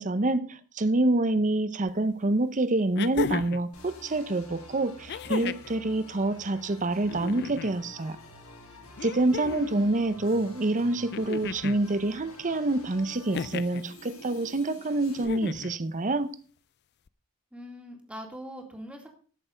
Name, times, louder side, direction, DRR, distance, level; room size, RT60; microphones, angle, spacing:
voice 1, 0.0-8.2 9.0-16.3, right 2 dB, 35° right, 0.7 m, -27 dB
sound 1, 1.9-2.0 2.9-3.7 5.1-5.7 7.0-7.7 9.0-9.8 11.1-11.8 13.3-13.8 15.2-15.8 17.1-17.2, left 6 dB, 50° left, 0.4 m, -34 dB
sound 2, 3.7-15.2, left 2 dB, 70° left, 3.1 m, -49 dB
voice 2, 9.6-10.3 17.5-19.1, equal, 5° right, 2.2 m, -43 dB
13.5 x 6.7 x 5.1 m
head